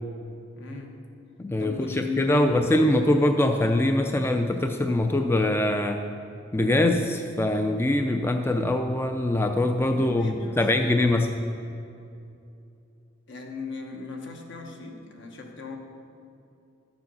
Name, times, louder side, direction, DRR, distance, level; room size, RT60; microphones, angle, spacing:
voice 1, 0.5-1.0 1.6-3.0 9.9-10.9 13.3-15.8, left 3 dB, 65° left, 2 dB, 1.4 m, -36 dB
voice 2, 1.4-6.1 6.5-11.3, left 1 dB, 10° left, 5 dB, 0.4 m, -23 dB
12.5 x 7.0 x 5.5 m, 2.7 s
head